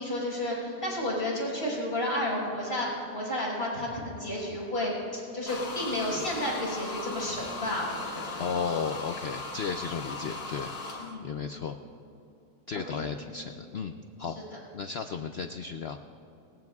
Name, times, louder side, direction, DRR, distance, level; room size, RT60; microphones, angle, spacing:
voice 1, 0.0-8.4 11.0-11.3 12.7-13.1, left 1 dB, 35° left, -6 dB, 5.0 m, -32 dB
sound 1, 5.5-11.1, left 3 dB, 55° left, 1.8 m, -38 dB
voice 2, 8.4-10.7 11.2-11.8 12.7-13.9 14.2-14.4 14.7-16.0, left 6 dB, 75° left, 7 dB, 0.5 m, -34 dB
23.0 x 19.5 x 2.4 m, 2.6 s
omnidirectional pair, 1.7 m